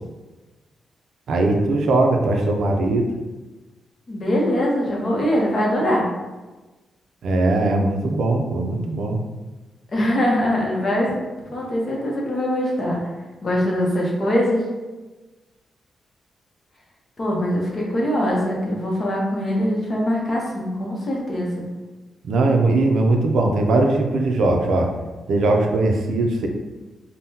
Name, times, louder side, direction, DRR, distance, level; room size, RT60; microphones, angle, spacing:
voice 1, 1.3-3.1 7.2-9.2 22.2-24.9 25.3-26.5, right 2 dB, 70° right, 2 dB, 0.4 m, -20 dB
voice 2, 4.1-6.1 9.9-11.2 11.5-13.0 13.4-14.7 17.2-21.6, equal, 35° left, -2 dB, 0.7 m, -22 dB
3.5 x 2.1 x 2.7 m, 1.2 s
cardioid pair, 125°, 0 cm